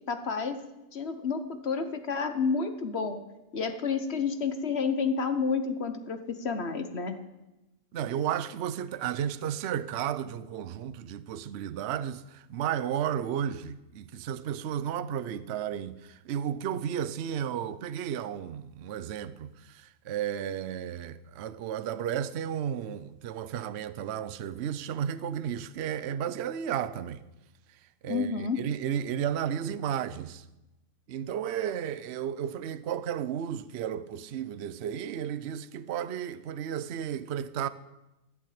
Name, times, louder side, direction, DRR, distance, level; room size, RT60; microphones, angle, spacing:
voice 1, 0.1-0.6 0.9-3.2 3.5-7.2 28.1-28.6, left 5 dB, 50° left, 1.3 m, -30 dB
voice 2, 7.9-27.2 28.0-30.4 31.1-37.7, right 9 dB, 60° right, 0.8 m, -33 dB
14.0 x 8.6 x 8.6 m
omnidirectional pair, 1.5 m